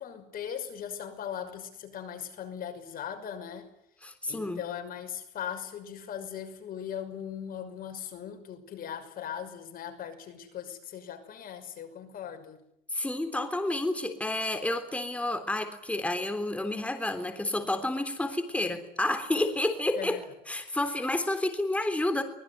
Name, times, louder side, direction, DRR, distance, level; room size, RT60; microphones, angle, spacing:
voice 1, 0.0-3.7 4.3-12.6 20.0-20.3, left 9 dB, 60° left, 6 dB, 6.1 m, -39 dB
voice 2, 4.0-4.6 12.9-20.2 20.5-22.2, left 1 dB, 10° left, 7 dB, 3.5 m, -30 dB
24.5 x 20.5 x 9.7 m, 0.77 s
cardioid pair, 110°, 17 cm